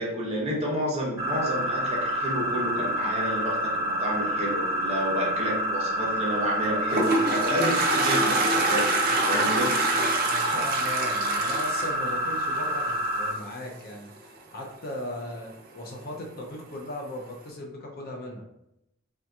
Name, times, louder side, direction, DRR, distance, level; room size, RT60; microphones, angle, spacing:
voice 1, 0.0-9.8, equal, 30° right, -4 dB, 0.8 m, -30 dB
sound 1, 1.2-13.3, right 1 dB, 5° right, 1.3 m, -28 dB
Toilet flush, 6.5-12.9, right 2 dB, 45° right, 0.4 m, -26 dB
voice 2, 10.2-18.5, left 1 dB, 45° left, 0 dB, 0.5 m, -38 dB
3.5 x 2.8 x 2.3 m, 0.84 s
head